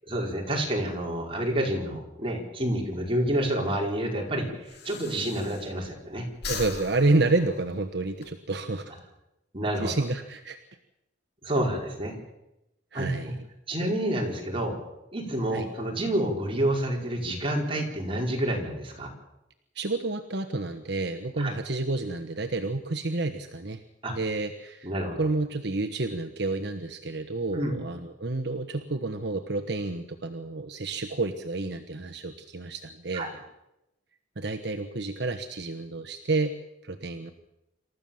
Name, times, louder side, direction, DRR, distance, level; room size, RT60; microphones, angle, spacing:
voice 1, 0.1-6.3 9.5-9.9 11.4-12.2 12.9-13.3 13.7-14.7 15.1-19.1 21.4-21.5 24.0-24.1 24.8-25.2 27.5-27.8 33.1-33.3, right 1 dB, 30° right, 0 dB, 4.9 m, -29 dB
Breathing, 3.2-6.0 6.3-8.3, left 5 dB, 60° left, 2.5 m, -40 dB
voice 2, 6.5-8.9 9.8-10.6 12.9-13.4 15.5-15.7 19.7-23.8 24.1-24.9 25.2-33.4 34.4-37.3, right 2 dB, 65° right, 6 dB, 1.2 m, -29 dB
27.0 x 14.0 x 7.2 m, 0.91 s
head